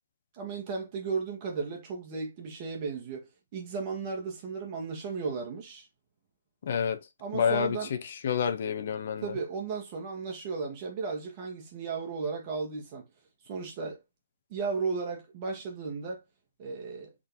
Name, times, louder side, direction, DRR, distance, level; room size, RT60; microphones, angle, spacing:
voice 1, 0.3-5.9 7.2-7.9 9.2-13.0 13.4-14.0 14.5-16.2 16.6-17.1, right 4 dB, 35° right, 1.3 m, -35 dB
voice 2, 6.6-7.0 7.3-9.3, left 7 dB, 55° left, 0.7 m, -29 dB
3.7 x 2.7 x 3.8 m
hypercardioid pair, 140°, 0 cm